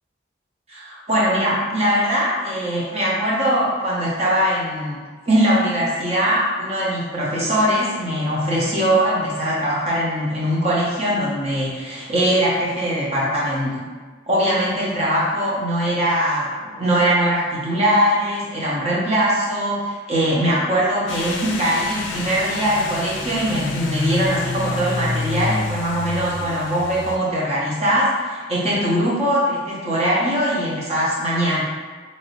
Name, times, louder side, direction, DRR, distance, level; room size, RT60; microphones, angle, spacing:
voice 1, 0.7-13.8 14.3-31.6, equal, 35° right, -6 dB, 0.8 m, -21 dB
sound 1, 21.1-27.2, left 3 dB, 70° left, 0.4 m, -28 dB
3.0 x 2.7 x 2.8 m, 1.5 s
head